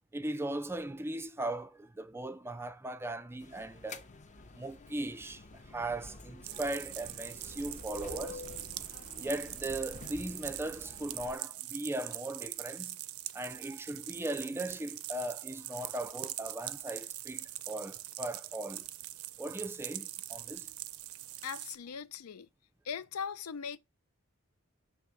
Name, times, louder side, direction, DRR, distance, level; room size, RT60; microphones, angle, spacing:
voice 1, 0.1-4.0 4.5-8.4 9.2-13.0 13.3-18.9 19.4-20.7, right 1 dB, 10° right, 0.3 m, -38 dB
sound 1, 3.4-11.4, left 3 dB, 35° left, 0.7 m, -48 dB
sound 2, 6.4-21.8, right 15 dB, 75° right, 0.5 m, -43 dB
voice 2, 21.4-22.5 22.8-23.8, left 6 dB, 85° left, 0.5 m, -39 dB
6.6 x 3.4 x 4.8 m
head